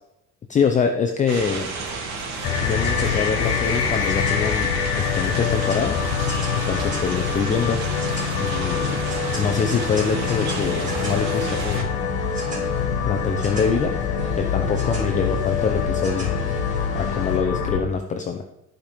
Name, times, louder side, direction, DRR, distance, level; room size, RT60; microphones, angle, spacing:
voice 1, 0.5-1.7 2.6-6.1 6.6-7.8 8.4-9.0 9.4-11.9 13.0-14.0 14.3-16.3 16.9-18.4, left 6 dB, 25° left, 5 dB, 0.6 m, -24 dB
sound 1, 1.3-11.8, right 4 dB, 75° right, 2.6 m, -32 dB
sound 2, 2.4-17.8, left 6 dB, 75° left, 1.5 m, -25 dB
sound 3, 2.4-17.4, right 1 dB, 25° right, 4.3 m, -38 dB
14.5 x 5.2 x 5.1 m, 0.90 s
cardioid pair, 150°, 32 cm